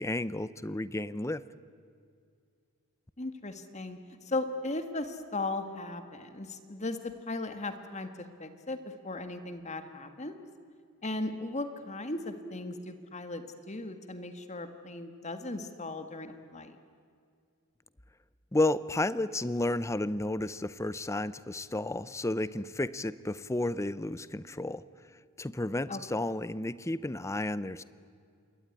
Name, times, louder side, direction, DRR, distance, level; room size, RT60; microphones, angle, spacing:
voice 1, 0.0-1.4 18.5-24.8 25.4-27.8, left 2 dB, 15° left, 16 dB, 0.6 m, -32 dB
voice 2, 3.2-4.0 4.2-8.1 8.4-10.4 11.0-16.8 25.9-26.0, left 2 dB, 30° left, 8 dB, 1.7 m, -37 dB
27.0 x 22.0 x 9.8 m, 2.3 s
head